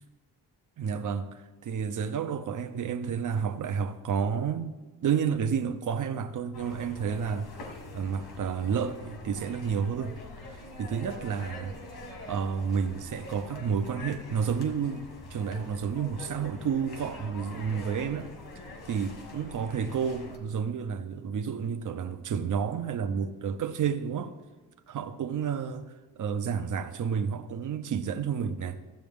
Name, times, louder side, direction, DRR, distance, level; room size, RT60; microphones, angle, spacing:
voice 1, 0.8-4.7 5.0-7.5 7.9-10.2 10.8-11.8 12.3-18.3 18.5-24.3 24.9-28.8, right 7 dB, 50° right, 0.7 m, -30 dB
sound 1, 6.5-20.4, left 2 dB, 65° left, 1.8 m, -44 dB
14.0 x 7.6 x 3.6 m
cardioid pair, 125°, 40 cm